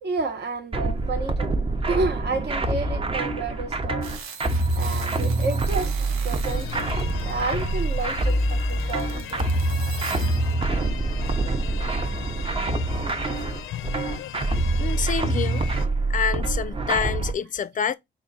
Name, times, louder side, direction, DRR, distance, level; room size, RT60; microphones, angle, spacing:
voice 1, 0.0-1.5 1.9-4.2 4.8-9.4, right 3 dB, 55° right, 1.0 m, -30 dB
sound 1, 0.7-17.3, right 2 dB, 25° right, 0.7 m, -25 dB
sound 2, 4.0-10.5, right 6 dB, 85° right, 0.7 m, -42 dB
sound 3, 6.5-15.9, left 11 dB, 90° left, 0.5 m, -37 dB
voice 2, 14.8-15.6 16.1-17.9, left 7 dB, 40° left, 0.4 m, -27 dB
3.4 x 2.5 x 4.1 m
cardioid pair, 75°, 21 cm